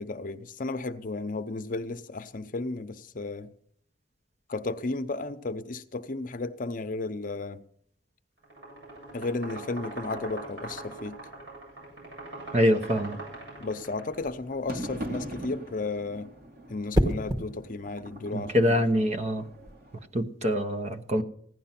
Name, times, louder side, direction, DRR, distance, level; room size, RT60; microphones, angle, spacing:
voice 1, 0.0-3.5 4.5-7.6 9.1-11.2 13.6-16.3 16.7-18.8, left 3 dB, 50° left, 0.8 m, -34 dB
sound 1, 8.4-14.2, right 2 dB, 85° right, 8.0 m, -41 dB
sound 2, 9.9-20.1, right 1 dB, 55° right, 2.7 m, -44 dB
voice 2, 12.5-13.2 18.3-19.4 20.1-21.2, equal, 40° right, 1.0 m, -25 dB
sound 3, 14.1-14.5 16.9-17.5 19.4-19.7, equal, 20° right, 1.5 m, -27 dB
15.5 x 10.5 x 5.8 m
head